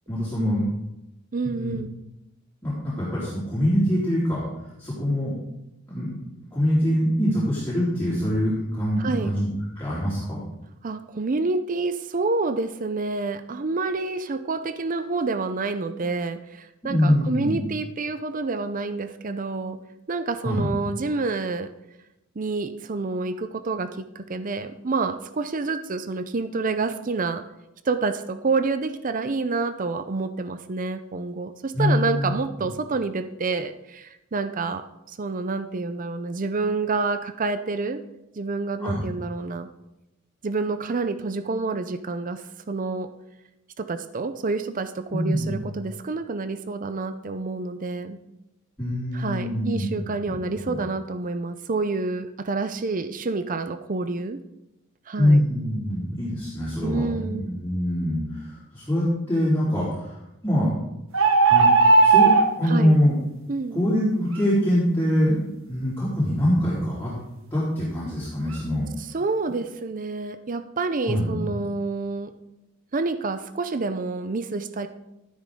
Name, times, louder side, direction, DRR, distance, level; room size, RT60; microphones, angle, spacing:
voice 1, 0.1-0.6 1.4-1.7 2.6-4.4 4.8-5.3 5.9-6.1 6.5-9.5 9.8-10.4 16.8-17.6 20.4-20.7 31.7-32.4 38.8-39.0 45.1-45.6 48.8-50.0 50.3-50.4 50.6-50.8 55.2-60.7 61.5-61.7 62.0-62.3 62.6-63.1 63.7-67.1 67.5-68.9 71.0-71.4, equal, 10° left, -11 dB, 4.0 m, -24 dB
voice 2, 1.3-1.9 9.0-9.3 10.8-19.8 20.1-21.7 22.4-27.4 27.9-38.0 38.4-39.7 40.4-43.1 43.8-48.2 49.1-54.4 55.1-55.4 56.8-57.5 62.6-63.0 63.5-63.8 69.0-72.3 72.9-74.9, right 3 dB, 40° right, 10 dB, 0.6 m, -28 dB
sound 1, 61.1-62.5, right 4 dB, 65° right, 1.1 m, -15 dB
13.0 x 11.5 x 3.7 m, 0.90 s
head